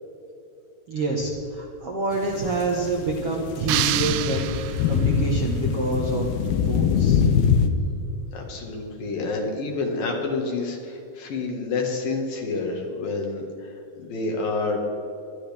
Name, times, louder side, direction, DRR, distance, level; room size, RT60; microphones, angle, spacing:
voice 1, 0.9-6.3 6.6-7.2, right 2 dB, 65° right, -1 dB, 1.5 m, -27 dB
sound 1, 2.1-7.7, left 6 dB, 85° left, 2.7 m, -23 dB
sound 2, 3.7-5.2, right 15 dB, 85° right, 1.9 m, -27 dB
voice 2, 8.3-13.7 14.0-14.8, left 3 dB, 70° left, 1 dB, 3.3 m, -28 dB
20.5 x 12.5 x 3.5 m, 2.8 s
omnidirectional pair, 4.4 m